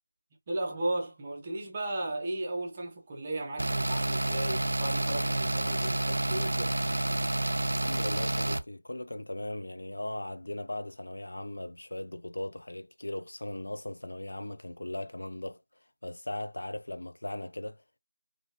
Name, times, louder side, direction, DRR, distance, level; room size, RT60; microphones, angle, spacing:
voice 1, 0.5-6.7, right 1 dB, 15° right, 0.5 m, -35 dB
sound 1, 3.6-8.6, right 1 dB, 70° right, 0.4 m, -29 dB
voice 2, 7.8-15.6 16.0-18.0, left 1 dB, 65° left, 0.4 m, -38 dB
2.9 x 2.7 x 2.7 m
figure-of-eight pair, 175°, 0 cm